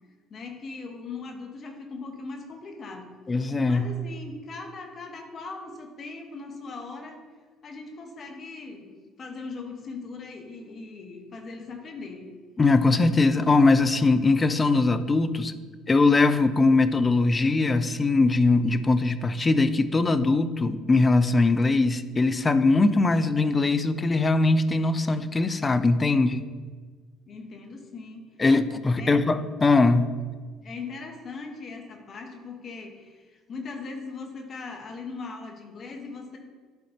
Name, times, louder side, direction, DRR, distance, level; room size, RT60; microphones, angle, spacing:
voice 1, 0.3-3.1 3.7-7.2 7.6-8.9 9.2-12.3 27.3-28.3 29.0-29.2 30.6-36.4, left 4 dB, 45° left, 3 dB, 1.3 m, -39 dB
voice 2, 3.3-3.9 12.6-15.5 15.9-26.5 28.4-30.1, left 3 dB, 25° left, 12 dB, 0.5 m, -21 dB
11.0 x 4.2 x 2.9 m, 1.5 s
hypercardioid pair, 65°, 0 cm